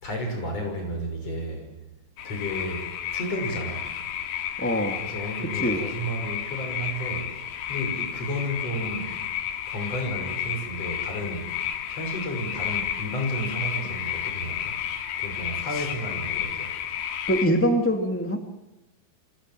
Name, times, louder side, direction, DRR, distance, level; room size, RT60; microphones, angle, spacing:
voice 1, 0.0-1.7 2.2-3.9 5.0-7.4 7.7-9.2 9.7-11.5 11.9-14.7 15.2-16.7, equal, 40° left, 3 dB, 7.2 m, -32 dB
sound 1, 2.2-17.5, left 9 dB, 85° left, 3.9 m, -32 dB
voice 2, 4.6-5.0 5.5-5.8 15.7-15.9 17.3-18.4, equal, 5° left, 5 dB, 1.4 m, -23 dB
29.0 x 26.0 x 7.7 m, 0.95 s
omnidirectional pair, 4.3 m